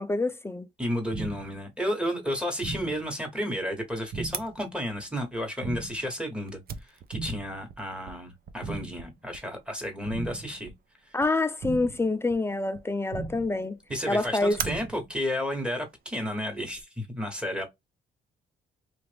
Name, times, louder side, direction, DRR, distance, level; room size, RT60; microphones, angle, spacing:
voice 1, 0.0-0.7 11.1-13.8 14.1-14.6, left 2 dB, 15° left, 0.3 m, -27 dB
voice 2, 0.8-10.7 11.1-11.2 13.9-17.6, equal, 5° right, 1.2 m, -32 dB
sound 1, 1.1-1.6 2.6-3.1 4.1-4.6 5.6-6.1 7.1-7.6 8.6-9.1 10.1-10.6 11.6-12.1 13.1-13.6 14.6-15.1, right 4 dB, 70° right, 1.5 m, -37 dB
Fire, 4.3-16.8, right 7 dB, 50° right, 0.5 m, -44 dB
3.2 x 2.5 x 3.3 m
cardioid pair, 90°, 20 cm